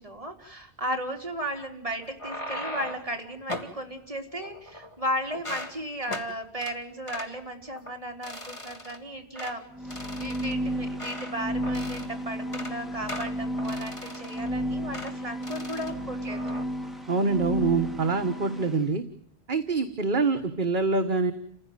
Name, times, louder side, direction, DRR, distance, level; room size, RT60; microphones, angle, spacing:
voice 1, 0.0-16.5 18.4-18.9, equal, 30° right, 2 dB, 3.4 m, -35 dB
sound 1, 2.0-3.1 3.5-3.8 4.4-5.0 5.3-5.8 6.1-6.3 6.6-6.8 7.1-7.3 7.8-7.9 8.2-9.0 9.4-9.6 9.9-11.4 11.6-12.1 12.4-12.8 13.1-14.5 14.9-15.1 15.4-15.9 16.3-16.6, left 1 dB, 30° left, 2.3 m, -38 dB
sound 2, 9.7-18.8, equal, ahead, 2.1 m, -33 dB
voice 2, 17.1-19.0 19.5-21.3, right 4 dB, 50° right, 6 dB, 1.5 m, -25 dB
29.5 x 16.0 x 9.3 m, 0.67 s
omnidirectional pair, 1.1 m